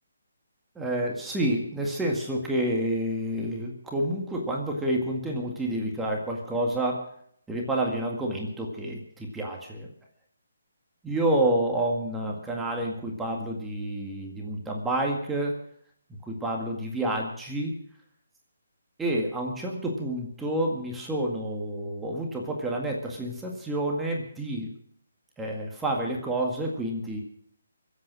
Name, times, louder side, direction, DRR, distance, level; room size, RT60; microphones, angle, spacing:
voice 1, 0.8-7.1 7.5-9.9 11.0-15.6 16.2-17.7 19.0-24.7 25.4-27.2, right 1 dB, 5° right, -1 dB, 2.0 m, -29 dB
23.5 x 8.4 x 6.2 m, 0.66 s
figure-of-eight pair, 150°, 0 cm